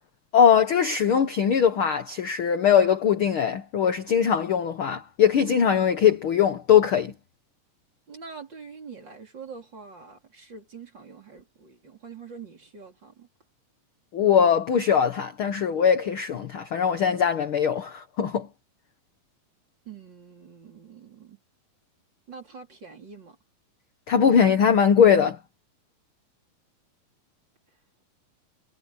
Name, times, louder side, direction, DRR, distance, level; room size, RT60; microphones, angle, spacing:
voice 1, 0.3-7.1 14.1-18.5 24.1-25.4, left 7 dB, 70° left, 1.2 m, -21 dB
voice 2, 8.1-13.3 19.9-21.4 22.3-23.4, right 5 dB, 30° right, 4.0 m, -44 dB
omnidirectional pair, 4.1 m